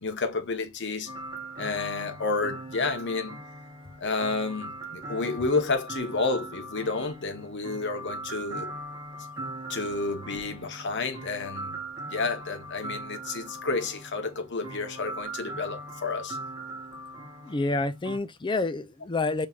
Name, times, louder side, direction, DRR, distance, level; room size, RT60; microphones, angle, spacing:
voice 1, 0.0-1.1 1.6-3.4 4.0-8.7 9.7-11.8 12.1-16.4, left 3 dB, 60° left, 1.1 m, -30 dB
sound 1, 1.1-18.2, right 1 dB, 20° right, 1.5 m, -40 dB
voice 2, 17.4-19.5, left 3 dB, 25° left, 0.5 m, -28 dB
5.6 x 3.2 x 2.4 m
head